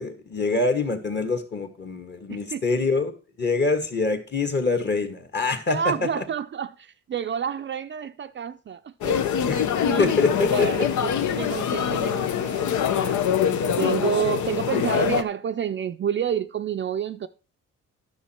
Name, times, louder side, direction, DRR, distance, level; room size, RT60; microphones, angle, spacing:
voice 1, 0.0-3.1 3.4-5.8 6.2-6.3 9.5-9.6 10.0-10.9, left 3 dB, 35° left, 1.9 m, -25 dB
voice 2, 2.3-2.6 5.7-9.2 9.5-9.6 9.9-13.2 13.8-17.3, right 8 dB, 40° right, 0.5 m, -29 dB
sound 1, 9.0-15.2, left 8 dB, 75° left, 0.8 m, -24 dB
10.5 x 6.4 x 4.4 m
cardioid pair, 90°, 30 cm